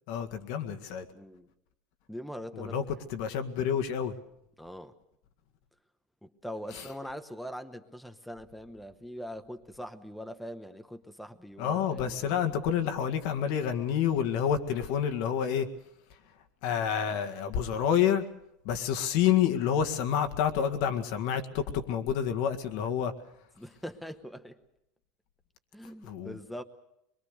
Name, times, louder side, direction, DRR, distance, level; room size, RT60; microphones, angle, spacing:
voice 1, 0.1-1.1 2.5-4.1 6.7-6.9 11.6-15.7 16.6-18.3 18.6-23.1 26.0-26.4, left 8 dB, 70° left, 1.9 m, -28 dB
voice 2, 1.1-1.5 2.1-2.8 4.6-4.9 6.2-12.6 23.6-24.6 25.7-26.6, equal, ahead, 1.0 m, -42 dB
23.5 x 22.5 x 6.7 m
supercardioid pair, 150°, 0 cm